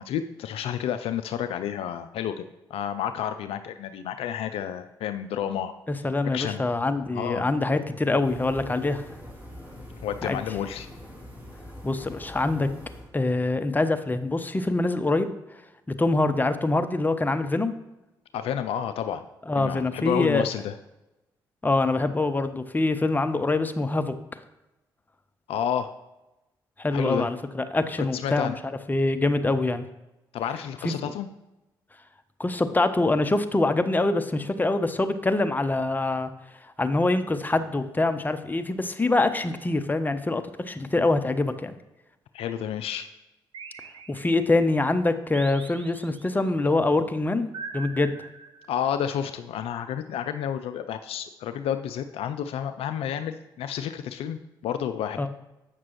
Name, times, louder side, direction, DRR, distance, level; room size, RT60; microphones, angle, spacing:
voice 1, 0.0-2.4 2.7-5.7 6.3-6.6 7.1-7.5 10.0-10.9 18.3-19.2 19.6-20.7 25.5-25.9 26.9-27.3 28.1-28.5 30.3-31.3 42.3-43.1 48.7-55.3, left 9 dB, 65° left, 10 dB, 0.4 m, -30 dB
voice 2, 5.9-9.0 10.2-10.4 11.8-12.7 13.1-15.3 15.9-17.7 19.5-20.5 21.6-24.1 26.8-29.8 30.8-31.1 32.4-36.3 36.8-41.7 44.1-47.5 47.7-48.1 55.2-55.3, left 2 dB, 15° left, 9 dB, 0.6 m, -24 dB
sound 1, 8.2-13.2, left 1 dB, 15° right, 2.6 m, -43 dB
sound 2, 43.5-44.7 45.3-46.5 47.5-49.0, right 5 dB, 50° right, 0.7 m, -42 dB
8.2 x 6.0 x 3.0 m, 0.98 s
hypercardioid pair, 40°, 11 cm